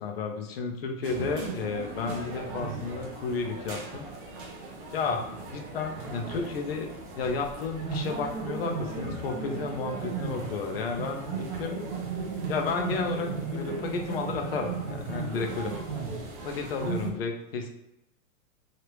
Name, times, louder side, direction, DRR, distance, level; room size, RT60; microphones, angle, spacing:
voice 1, 0.0-4.1 4.9-5.2 5.5-6.9 7.2-11.8 12.5-15.7 16.4-17.7, left 4 dB, 45° left, 3 dB, 0.4 m, -32 dB
sound 1, 1.0-17.1, right 4 dB, 40° right, 0.6 m, -36 dB
3.3 x 2.4 x 2.9 m, 0.86 s
supercardioid pair, 175°, 43 cm